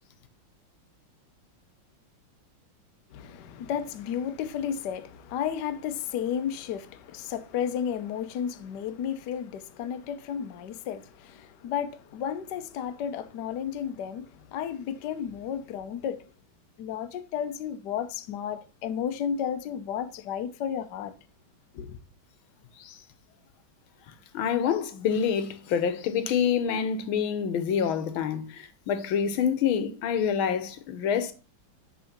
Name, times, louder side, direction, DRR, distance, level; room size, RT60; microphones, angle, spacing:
voice 1, 3.1-16.2 16.8-21.1 21.7-22.0, left 8 dB, 65° left, 1.3 m, -33 dB
voice 2, 24.1-31.3, left 7 dB, 85° left, 1.7 m, -27 dB
9.8 x 3.6 x 5.8 m
omnidirectional pair, 2.2 m